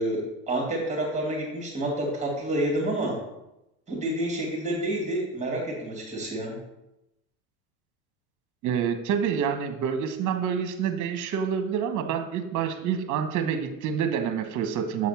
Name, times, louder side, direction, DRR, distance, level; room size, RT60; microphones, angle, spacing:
voice 1, 0.0-3.2 3.9-6.6, right 1 dB, 15° right, -1 dB, 2.2 m, -29 dB
voice 2, 8.6-15.1, right 7 dB, 45° right, 7 dB, 1.1 m, -27 dB
7.6 x 4.2 x 5.6 m, 0.92 s
supercardioid pair, 125°, 42 cm